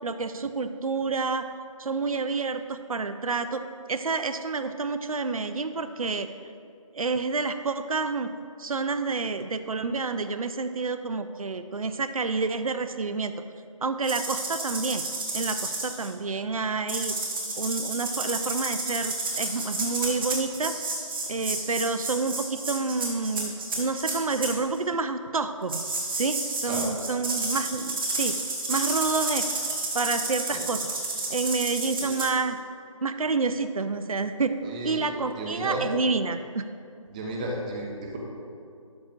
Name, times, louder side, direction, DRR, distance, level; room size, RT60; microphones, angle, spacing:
voice 1, 0.0-1.5 1.8-3.6 3.9-6.3 6.9-8.3 8.6-13.3 13.8-15.0 15.3-17.1 17.6-20.8 21.3-25.8 26.1-28.4 28.7-29.5 29.9-30.9 31.3-32.6 33.0-34.6 34.8-36.7, right 4 dB, 80° right, 9 dB, 0.5 m, -29 dB
sound 1, 14.0-16.1 16.9-24.5 25.7-32.3, right 2 dB, 40° right, 1.7 m, -31 dB
voice 2, 34.6-35.0 35.4-35.8 37.1-38.2, right 1 dB, 15° right, -2 dB, 0.7 m, -33 dB
12.0 x 8.5 x 2.5 m, 2.5 s
figure-of-eight pair, 155°, 18 cm